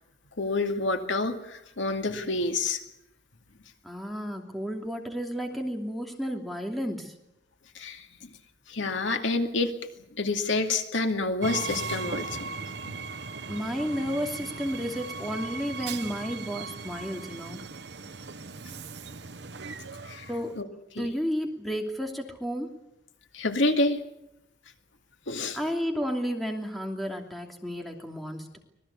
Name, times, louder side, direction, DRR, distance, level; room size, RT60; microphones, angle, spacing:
voice 1, 0.4-2.8 7.7-8.3 8.7-9.7 10.2-12.5 12.8-13.0 20.0-20.3 20.6-20.7 20.9-21.1 23.3-24.0 25.3-25.6, left 2 dB, 75° left, 5 dB, 2.4 m, -28 dB
voice 2, 3.8-7.1 13.5-17.6 20.3-20.5 21.0-22.7 25.5-28.6, equal, ahead, 2 dB, 2.8 m, -32 dB
Train, 11.4-20.6, right 4 dB, 55° right, 1.0 m, -38 dB
25.5 x 19.0 x 8.4 m, 0.84 s
head